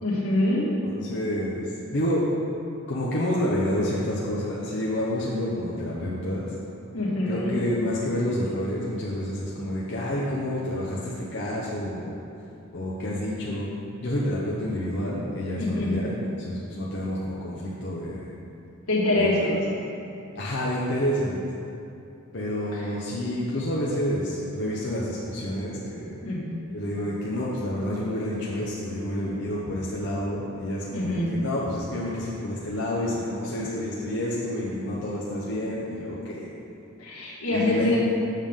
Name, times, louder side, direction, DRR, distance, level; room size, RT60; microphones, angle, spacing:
voice 1, 0.0-0.6 6.9-7.6 15.6-15.9 18.9-19.6 22.7-22.9 26.2-26.4 30.9-31.4 37.0-38.0, left 1 dB, 80° left, -5 dB, 1.8 m, -25 dB
voice 2, 0.8-1.7 1.9-2.3 2.9-6.5 7.3-12.1 12.7-18.3 19.2-19.3 20.3-21.4 22.3-26.2 26.7-36.5 37.5-38.0, left 1 dB, 55° left, -5 dB, 0.8 m, -29 dB
7.4 x 6.7 x 3.7 m, 2.7 s
head